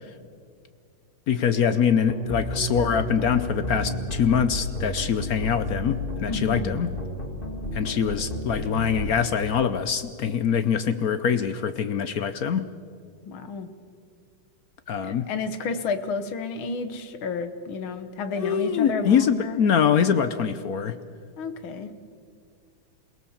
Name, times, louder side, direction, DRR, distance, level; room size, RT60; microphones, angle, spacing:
voice 1, 1.3-6.9 7.7-12.6 14.9-15.3 18.4-20.9, left 7 dB, 60° left, 11 dB, 1.0 m, -24 dB
sound 1, 2.1-9.1, left 1 dB, 25° left, 2.4 m, -32 dB
voice 2, 6.2-6.8 13.3-13.7 15.0-19.6 21.4-21.9, left 4 dB, 85° left, 10 dB, 2.1 m, -31 dB
27.5 x 17.5 x 7.2 m, 2.2 s
omnidirectional pair, 2.2 m